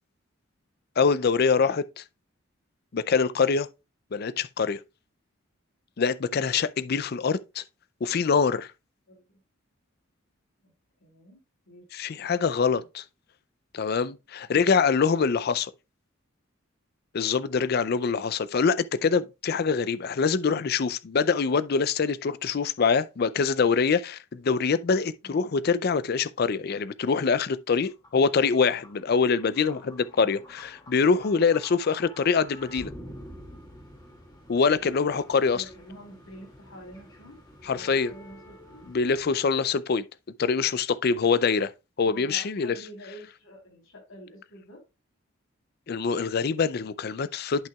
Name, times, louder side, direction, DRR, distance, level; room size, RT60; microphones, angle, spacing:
voice 1, 1.0-2.0 2.9-3.7 4.1-4.8 6.0-7.6 8.0-8.7 11.9-13.0 13.7-15.7 17.1-32.9 34.5-35.6 37.6-38.1 38.9-40.0 40.4-41.7 42.0-42.8 45.9-47.7, left 5 dB, 50° left, 0.4 m, -24 dB
voice 2, 11.0-11.4 11.6-11.8 25.2-25.5 35.5-38.8 42.0-44.8, equal, 80° left, 3.4 m, -47 dB
sound 1, 27.8-39.4, equal, 20° left, 2.2 m, -49 dB
10.5 x 5.8 x 2.3 m
head